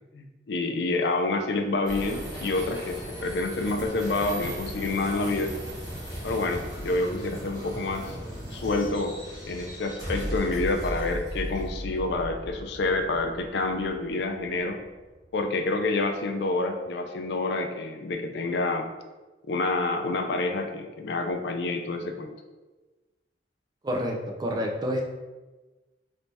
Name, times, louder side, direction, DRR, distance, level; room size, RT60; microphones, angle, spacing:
voice 1, 0.1-5.5 6.2-8.2 8.5-9.2 9.5-14.8 15.3-18.9 19.5-22.3, left 2 dB, 65° left, 6 dB, 0.4 m, -28 dB
sound 1, 1.8-15.2, equal, 20° left, 1.1 m, -37 dB
voice 2, 23.8-25.0, equal, 20° right, 1 dB, 0.4 m, -28 dB
3.2 x 2.6 x 3.3 m, 1.2 s
head